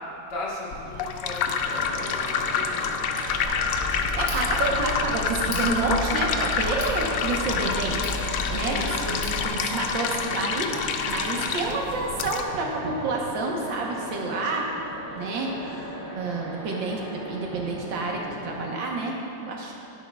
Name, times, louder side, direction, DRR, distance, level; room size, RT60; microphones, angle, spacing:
voice 1, 0.1-3.6 7.2-7.6 8.6-9.4, left 2 dB, 65° left, -5 dB, 2.1 m, -38 dB
sound 1, 0.7-12.4, left 6 dB, 85° left, 0.7 m, -28 dB
sound 2, 1.6-18.7, equal, 55° right, 1.3 m, -39 dB
Tick, 3.4-9.5, left 1 dB, 45° left, 1.5 m, -34 dB
voice 2, 4.1-14.7 15.2-15.6 16.1-19.2 19.4-19.7, right 3 dB, 85° right, -1 dB, 1.8 m, -29 dB
10.5 x 10.5 x 2.3 m, 2.7 s
omnidirectional pair, 2.0 m